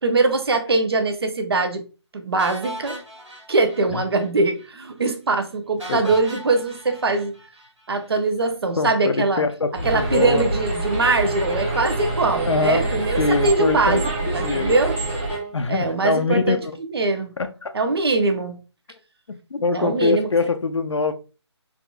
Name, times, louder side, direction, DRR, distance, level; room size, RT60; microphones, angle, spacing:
voice 1, 0.0-1.8 2.1-3.0 3.5-7.3 7.9-9.4 9.8-15.0 15.7-16.6 16.9-17.3 17.7-18.6 19.7-20.3, right 3 dB, 55° right, 0.6 m, -22 dB
sound 1, 2.4-4.3 4.6-4.7 5.0-5.1 5.8-8.1, equal, 85° right, 1.5 m, -38 dB
voice 2, 8.8-10.5 12.4-12.9 13.2-14.8 15.5-16.7 17.4-17.7 19.3-21.1, left 4 dB, 75° left, 0.5 m, -23 dB
sound 2, 9.7-15.4, right 2 dB, 25° right, 0.7 m, -27 dB
sound 3, 9.8-15.6, right 1 dB, 10° right, 1.1 m, -31 dB
3.5 x 2.5 x 2.3 m
figure-of-eight pair, 155°, 15 cm